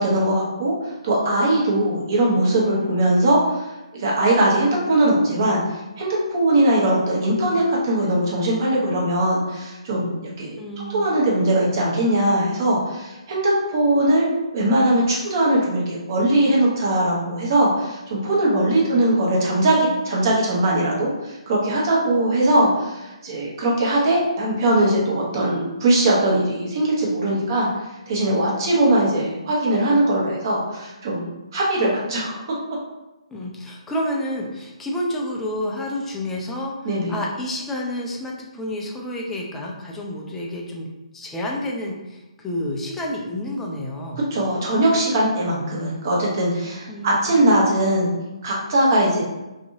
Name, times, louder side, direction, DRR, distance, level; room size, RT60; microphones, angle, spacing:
voice 1, 0.0-5.6 6.0-10.6 10.9-14.3 14.5-27.7 28.1-32.4 36.8-37.1 44.3-48.2 48.4-49.2, right 1 dB, 35° right, -5 dB, 0.8 m, -20 dB
voice 2, 10.6-11.1 18.8-19.0 33.3-40.9 41.1-44.3 46.9-47.3, left 1 dB, 5° left, -2 dB, 0.3 m, -29 dB
2.7 x 2.5 x 2.6 m, 1.0 s
figure-of-eight pair, 135°, 3 cm